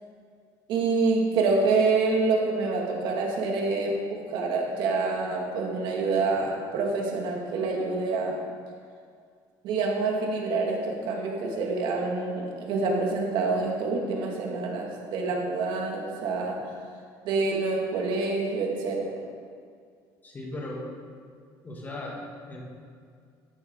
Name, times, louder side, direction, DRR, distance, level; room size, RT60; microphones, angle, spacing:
voice 1, 0.7-8.4 9.6-16.6 17.2-19.2, right 3 dB, 75° right, -1 dB, 2.3 m, -27 dB
voice 2, 20.2-20.9 21.6-22.6, left 1 dB, 20° left, -2 dB, 2.4 m, -37 dB
14.0 x 10.0 x 4.0 m, 2.2 s
cardioid pair, 140°, 8 cm